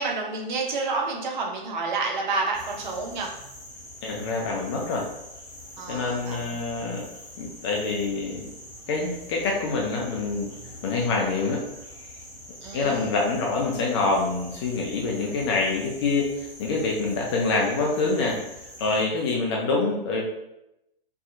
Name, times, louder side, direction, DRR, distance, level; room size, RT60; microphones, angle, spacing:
voice 1, 0.0-3.4 5.8-6.5 12.6-13.1, right 3 dB, 50° right, 0 dB, 0.7 m, -29 dB
sound 1, 2.5-19.0, left 1 dB, 10° left, 1.2 m, -44 dB
voice 2, 4.0-5.1 5.9-7.1 7.4-8.5 8.9-10.5 10.8-11.6 12.7-18.4 18.8-20.2, left 3 dB, 30° left, -1 dB, 0.4 m, -26 dB
2.7 x 2.2 x 2.5 m, 0.86 s
figure-of-eight pair, 120°, 30 cm